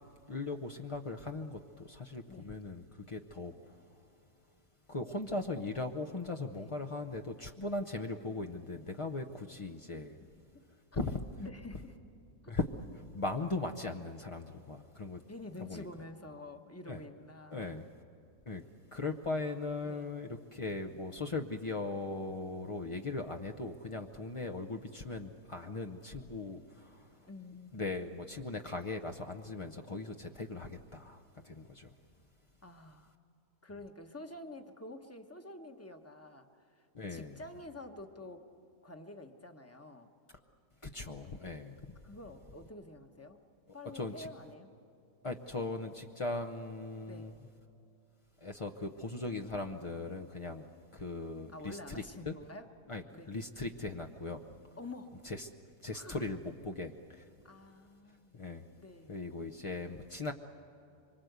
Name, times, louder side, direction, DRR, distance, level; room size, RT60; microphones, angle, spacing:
voice 1, 0.3-3.8 4.9-10.2 11.0-11.2 12.5-12.6 13.1-15.2 15.7-15.8 16.9-17.0 17.5-17.9 18.5-18.6 18.9-27.3 27.7-31.9 36.9-37.4 40.8-41.8 43.7-44.3 45.2-47.3 48.4-50.7 50.9-52.3 52.9-54.4 55.2-55.5 55.8-57.2 58.3-58.6 59.1-60.3, left 3 dB, 60° left, 5 dB, 0.3 m, -39 dB
voice 2, 11.4-11.9 12.4-12.5 15.3-17.8 19.8-20.1 27.3-27.9 32.6-33.1 33.6-38.4 38.8-40.1 42.0-43.4 43.7-44.7 47.1-47.3 51.5-52.7 53.1-53.3 54.8-55.2 55.9-56.2 57.4-58.3 58.8-59.1, left 2 dB, 10° left, 6 dB, 0.8 m, -48 dB
24.5 x 24.5 x 8.1 m, 2.8 s
omnidirectional pair, 1.7 m